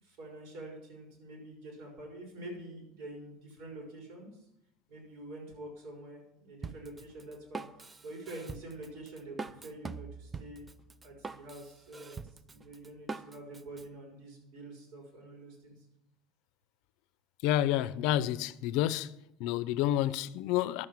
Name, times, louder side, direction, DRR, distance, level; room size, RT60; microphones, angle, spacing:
voice 1, 0.0-4.4 4.9-7.7 8.0-10.7 11.0-15.9, right 1 dB, 65° right, 5.8 m, -47 dB
Drum kit, 6.6-13.8, right 4 dB, 15° right, 0.5 m, -43 dB
voice 2, 17.4-19.1 19.4-20.8, left 13 dB, 70° left, 0.5 m, -29 dB
11.0 x 7.7 x 7.3 m
supercardioid pair, 130°, 0 cm